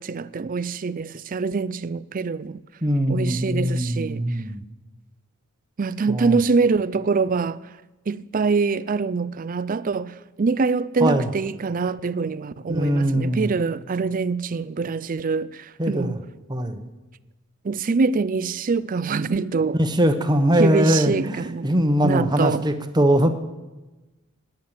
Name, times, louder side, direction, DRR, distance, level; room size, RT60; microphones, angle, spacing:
voice 1, 0.0-2.6 3.1-4.2 5.8-7.6 8.1-16.2 17.6-19.8 20.6-21.7 22.0-22.6, right 4 dB, 40° right, 0.4 m, -24 dB
voice 2, 2.8-4.6 6.1-6.4 11.0-11.3 12.7-13.5 15.8-16.2 16.5-16.9 19.8-23.3, equal, 20° right, 1.0 m, -21 dB
18.0 x 10.5 x 7.4 m
head